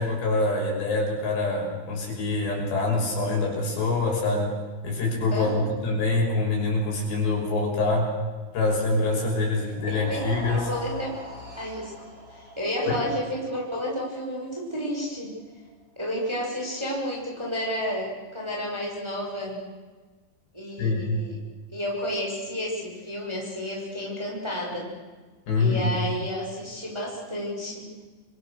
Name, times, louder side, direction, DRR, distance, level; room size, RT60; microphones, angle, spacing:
voice 1, 0.0-4.5 4.8-8.1 8.5-10.7 12.9-13.0 20.8-21.2 25.5-25.9, left 3 dB, 60° left, 0 dB, 8.0 m, -25 dB
voice 2, 5.3-5.7 9.9-11.2 11.6-11.9 12.6-15.3 16.0-19.7 20.5-21.4 21.7-24.9 25.5-27.9, equal, 5° right, -2 dB, 6.0 m, -31 dB
sound 1, 9.7-15.9, left 1 dB, 35° right, 9.1 m, -42 dB
28.0 x 24.5 x 6.7 m, 1.4 s
omnidirectional pair, 5.5 m